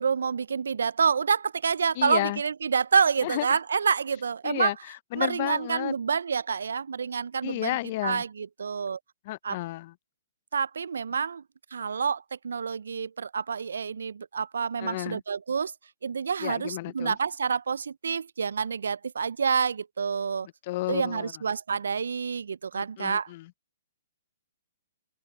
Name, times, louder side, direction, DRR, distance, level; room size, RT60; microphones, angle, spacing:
voice 1, 0.0-4.7 5.1-7.8 8.0-9.0 9.4-9.6 10.5-11.4 11.7-15.7 16.0-20.5 20.9-23.3, right 6 dB, 70° right, 0.3 m, -28 dB
voice 2, 2.0-2.4 3.2-3.6 4.4-5.9 7.4-8.2 9.3-9.9 14.8-15.2 16.4-17.2 20.6-21.3 22.7-23.5, left 17 dB, 45° left, 0.5 m, -32 dB
open air
figure-of-eight pair, 125°, 0 cm